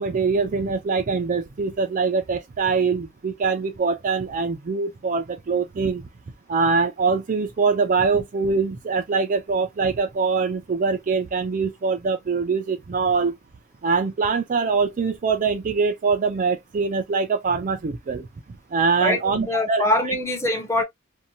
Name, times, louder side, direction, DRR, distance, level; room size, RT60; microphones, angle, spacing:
voice 1, 0.0-6.1 6.5-13.4 13.8-18.3 18.7-20.1, right 4 dB, 40° right, 0.4 m, -23 dB
voice 2, 19.0-20.8, left 1 dB, 15° left, 0.6 m, -23 dB
2.6 x 2.2 x 2.6 m
head